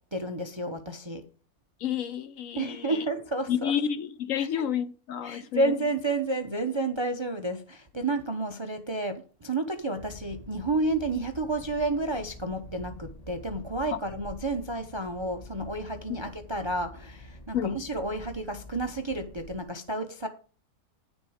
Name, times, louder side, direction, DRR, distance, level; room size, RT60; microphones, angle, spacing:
voice 1, 0.1-1.2 2.5-3.8 4.4-4.6 5.2-20.3, right 2 dB, 30° right, 0.5 m, -31 dB
voice 2, 1.8-3.1 3.5-5.7 13.9-14.0 17.5-17.8, left 9 dB, 70° left, 0.9 m, -30 dB
sound 1, 9.9-19.6, left 2 dB, 30° left, 1.0 m, -47 dB
10.0 x 6.2 x 4.9 m
omnidirectional pair, 1.6 m